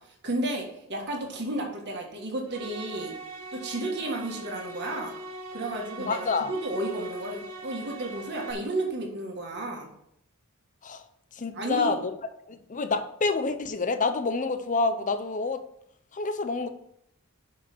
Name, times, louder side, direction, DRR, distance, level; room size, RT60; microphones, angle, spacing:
voice 1, 0.2-3.2 3.5-5.1 5.5-6.2 6.5-9.9 11.5-12.0, right 1 dB, 50° right, 0 dB, 1.7 m, -32 dB
sound 1, 2.5-8.5, right 2 dB, 75° right, 1.1 m, -41 dB
voice 2, 6.0-6.5 10.8-11.0 11.3-12.1 12.5-15.6 16.1-16.7, left 3 dB, 35° left, 9 dB, 0.7 m, -28 dB
6.5 x 5.1 x 6.8 m, 0.74 s
head